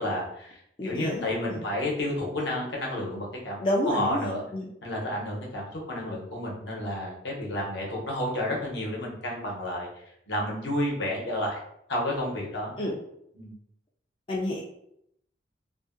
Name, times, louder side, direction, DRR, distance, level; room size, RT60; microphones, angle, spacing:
voice 1, 0.0-3.6 3.9-4.4 4.8-11.6 11.9-12.7 13.3-13.5, left 1 dB, 70° left, -3 dB, 0.8 m, -31 dB
voice 2, 0.8-1.6 3.6-4.6 12.8-13.0 14.3-14.6, left 1 dB, 25° left, -4 dB, 0.3 m, -29 dB
2.7 x 2.5 x 2.5 m, 0.75 s
head